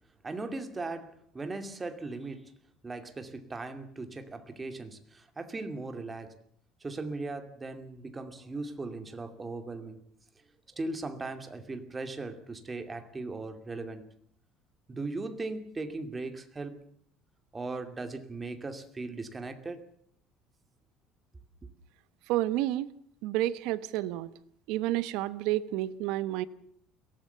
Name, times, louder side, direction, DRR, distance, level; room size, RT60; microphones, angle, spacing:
voice 1, 0.2-2.5 2.8-6.3 6.8-10.0 10.7-14.1 14.9-16.8 17.5-19.8, right 3 dB, 15° right, 8 dB, 2.5 m, -38 dB
voice 2, 22.3-22.9 23.2-24.3 24.7-26.4, right 15 dB, 75° right, 14 dB, 1.3 m, -30 dB
23.0 x 18.0 x 7.0 m, 0.64 s
cardioid pair, 130°, 0 cm